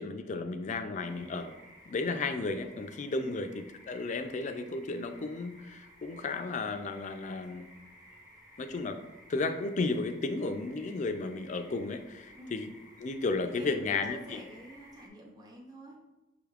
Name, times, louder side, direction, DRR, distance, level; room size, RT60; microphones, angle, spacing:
voice 1, 0.0-1.6 1.9-7.7 8.6-9.0 9.3-12.7 13.0-14.4, left 3 dB, 35° left, 7 dB, 0.3 m, -33 dB
sound 1, 1.0-15.1, equal, 40° right, 1.2 m, -56 dB
voice 2, 13.4-16.0, right 1 dB, 20° right, -2 dB, 0.6 m, -49 dB
6.1 x 3.4 x 2.4 m, 1.1 s
head